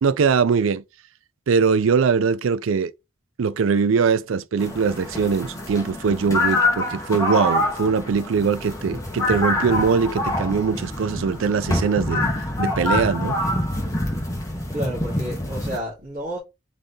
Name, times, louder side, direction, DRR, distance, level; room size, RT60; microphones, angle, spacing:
voice 1, 0.0-0.8 1.5-2.9 3.4-12.3 12.6-13.4, right 5 dB, 85° right, 0.4 m, -21 dB
sound 1, 4.6-15.8, left 1 dB, 15° left, 1.1 m, -26 dB
voice 2, 14.7-16.4, equal, 40° right, 2.5 m, -31 dB
4.0 x 3.9 x 3.4 m
head